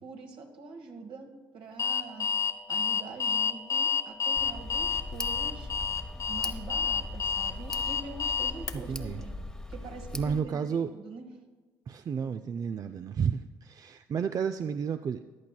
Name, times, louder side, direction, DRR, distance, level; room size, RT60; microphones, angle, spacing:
voice 1, 0.0-2.3 2.7-5.7 6.3-9.4 9.7-11.3, right 3 dB, 65° right, 3 dB, 1.6 m, -44 dB
Alarm, 1.8-8.7, left 6 dB, 35° left, 0.7 m, -29 dB
Tick, 4.4-10.4, left 1 dB, 5° left, 0.8 m, -40 dB
voice 2, 8.7-9.2 10.1-10.9 11.9-15.2, right 6 dB, 40° right, 10 dB, 0.3 m, -31 dB
14.5 x 10.5 x 2.3 m, 1.3 s
supercardioid pair, 65°, 10 cm